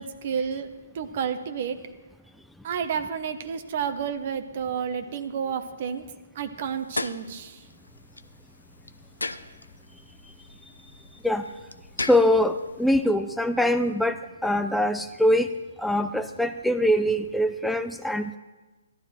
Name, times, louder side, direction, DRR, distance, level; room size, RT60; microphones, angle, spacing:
voice 1, 0.0-1.8 2.6-6.0 6.3-7.6, right 7 dB, 45° right, 9 dB, 1.0 m, -30 dB
sound 1, 6.6-13.0, left 2 dB, 85° left, 0.7 m, -38 dB
voice 2, 12.0-15.5 15.8-18.4, left 1 dB, ahead, 7 dB, 0.4 m, -23 dB
15.5 x 12.0 x 4.4 m, 1.2 s
figure-of-eight pair, 135°, 0 cm